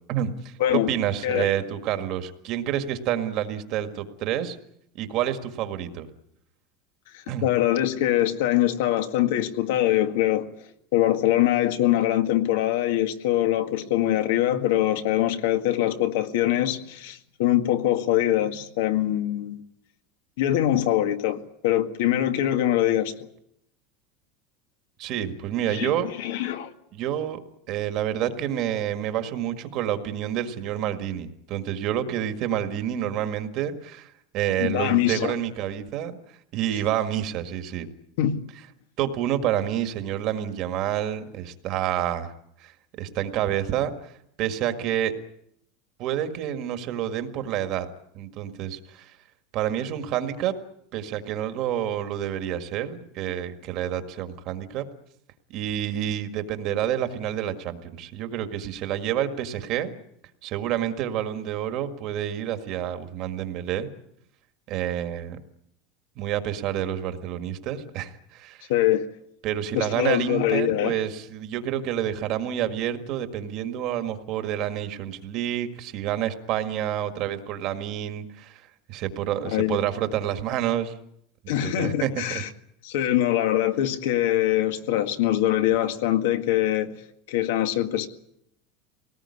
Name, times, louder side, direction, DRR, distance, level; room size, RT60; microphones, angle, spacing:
voice 1, 0.1-4.6 5.0-6.1 7.3-7.4 25.0-26.1 26.9-27.4 27.7-36.2 36.5-37.9 39.0-42.3 42.6-42.7 43.0-44.1 44.4-45.1 46.0-47.9 48.1-49.1 49.5-50.5 50.9-54.9 55.5-59.9 60.4-63.9 64.7-65.4 66.2-68.7 69.4-78.6 78.9-80.9 81.4-82.4, right 10 dB, 40° right, 1.7 m, -28 dB
voice 2, 0.6-0.9 1.2-1.5 7.1-10.5 10.9-19.6 20.4-23.1 25.7-26.7 34.6-35.3 38.2-38.4 68.7-69.1 69.7-71.0 79.5-79.8 81.5-82.5 82.8-86.9 87.3-88.1, left 13 dB, 70° left, 1.9 m, -23 dB
23.0 x 19.0 x 9.7 m
supercardioid pair, 180°, 0 cm